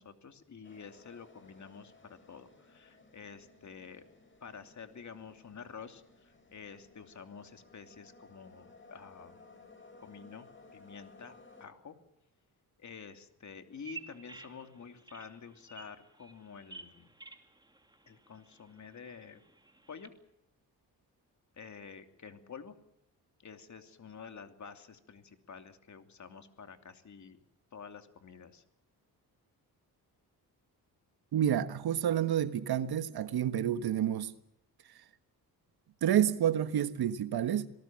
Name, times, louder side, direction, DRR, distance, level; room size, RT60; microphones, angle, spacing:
voice 1, 0.0-4.0 4.4-9.4 10.0-12.0 12.8-17.1 18.1-19.4 19.9-20.1 21.6-22.8 23.4-27.4 27.7-28.6, left 6 dB, 45° left, 2.8 m, -49 dB
sound 1, 0.6-11.7, left 3 dB, 30° left, 7.5 m, -59 dB
Bird vocalization bird call bird song, 13.7-20.1, right 4 dB, 10° right, 2.9 m, -52 dB
voice 2, 31.3-34.3 36.0-37.7, right 10 dB, 75° right, 1.4 m, -29 dB
26.0 x 19.0 x 7.5 m
cardioid pair, 90°, 38 cm